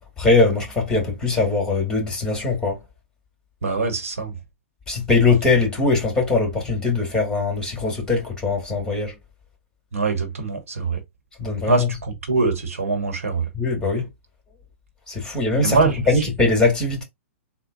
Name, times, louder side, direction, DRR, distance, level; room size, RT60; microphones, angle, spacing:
voice 1, 0.2-2.8 4.9-9.1 11.4-11.9 13.5-14.1 15.1-15.8 16.1-17.0, left 3 dB, 10° left, 2.2 m, -21 dB
voice 2, 3.6-4.3 9.9-11.0 11.7-13.4 15.6-16.0, right 3 dB, 90° right, 1.3 m, -23 dB
3.8 x 2.3 x 4.0 m
hypercardioid pair, 125°, 7 cm